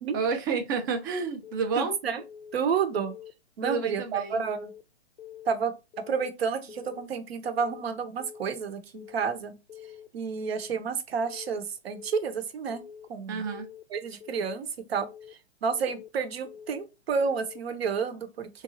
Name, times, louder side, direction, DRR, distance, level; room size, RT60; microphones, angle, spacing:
voice 1, 0.1-1.9 3.6-4.4 13.3-13.7, right 5 dB, 20° right, 0.3 m, -30 dB
Keyboard (musical) / Alarm, 1.4-1.8 2.2-2.6 2.9-3.3 3.7-4.1 4.4-4.8 5.2-5.6 5.9-6.3 6.7-7.1 7.4-7.8 8.2-8.6 8.9-9.3 9.7-10.1 10.4-10.8 11.2-11.6 11.9-12.3 12.7-13.1 13.4-13.8 14.2-14.6 15.0-15.3 15.7-16.1 16.5-16.8 17.2-17.6, left 9 dB, 75° left, 0.5 m, -46 dB
voice 2, 1.8-2.2 2.5-3.1 3.6-4.7 5.5-5.7 6.1-9.6 10.1-12.8 13.1-13.4 13.9-18.6, right 6 dB, 65° right, 0.7 m, -30 dB
2.9 x 2.3 x 2.5 m
figure-of-eight pair, 120°, 33 cm